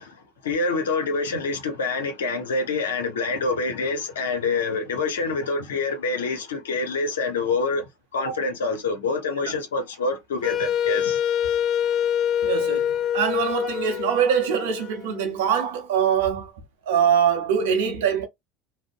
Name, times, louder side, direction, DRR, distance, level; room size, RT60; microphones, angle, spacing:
voice 1, 0.0-7.9 8.1-11.2, left 3 dB, 80° left, 0.7 m, -26 dB
Wind instrument woodwind instrument, 10.4-15.4, left 9 dB, 45° left, 0.3 m, -25 dB
voice 2, 12.4-16.5 16.9-18.3, right 8 dB, 75° right, 0.6 m, -23 dB
2.6 x 2.1 x 2.5 m
hypercardioid pair, 75°, 0 cm